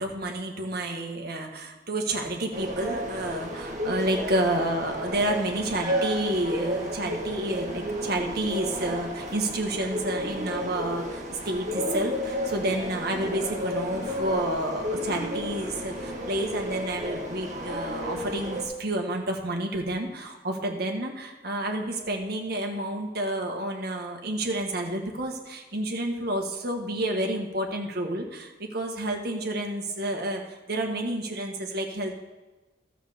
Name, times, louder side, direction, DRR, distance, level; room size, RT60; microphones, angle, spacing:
voice 1, 0.0-30.4 30.7-32.2, right 1 dB, 60° right, 2 dB, 1.6 m, -30 dB
sound 1, 2.5-18.6, equal, 40° right, 2.0 m, -32 dB
13.0 x 5.0 x 7.1 m, 1.2 s
head